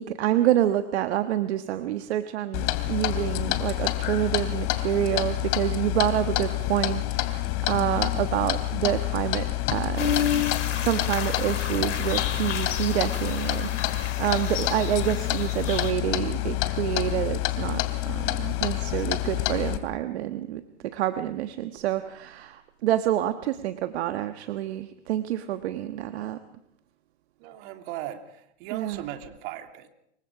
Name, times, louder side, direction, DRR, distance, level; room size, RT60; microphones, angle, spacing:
voice 1, 0.0-10.5 10.7-20.6 20.9-26.4 28.7-29.0, right 12 dB, 65° right, 9 dB, 1.4 m, -28 dB
Clock, 2.5-19.8, left 17 dB, 45° left, 2.9 m, -28 dB
sound 1, 10.0-15.9, left 8 dB, 85° left, 3.5 m, -31 dB
voice 2, 27.4-29.9, right 12 dB, 50° right, 5 dB, 2.8 m, -38 dB
28.0 x 24.0 x 5.0 m, 0.75 s
hypercardioid pair, 120°, 36 cm